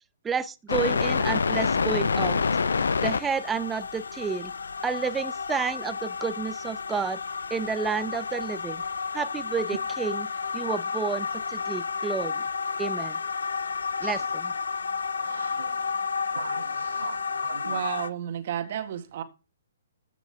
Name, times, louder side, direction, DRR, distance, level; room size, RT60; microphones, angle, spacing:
voice 1, 0.2-2.4 3.0-4.5 4.8-7.2 7.5-8.8 9.1-10.3 10.5-12.4 12.8-13.2 14.0-14.5, right 5 dB, 10° right, 0.7 m, -30 dB
sound 1, 0.7-18.1, left 5 dB, 70° left, 0.7 m, -29 dB
voice 2, 15.2-15.8 16.3-17.8, right 5 dB, 70° right, 1.0 m, -41 dB
voice 3, 17.7-19.2, right 10 dB, 50° right, 1.9 m, -32 dB
14.5 x 6.1 x 3.6 m
figure-of-eight pair, 130°, 0 cm